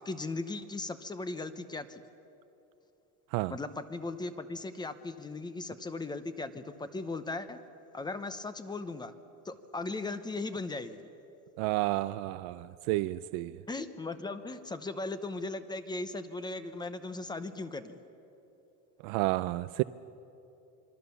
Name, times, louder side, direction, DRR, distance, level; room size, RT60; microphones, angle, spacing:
voice 1, 0.0-2.0 3.5-7.6 7.9-9.1 9.4-11.1 13.7-18.0, left 3 dB, 10° left, 11 dB, 0.8 m, -38 dB
voice 2, 11.6-13.6 19.0-19.8, right 18 dB, 90° right, 14 dB, 0.6 m, -31 dB
27.0 x 23.0 x 7.0 m, 2.9 s
cardioid pair, 160°, 35 cm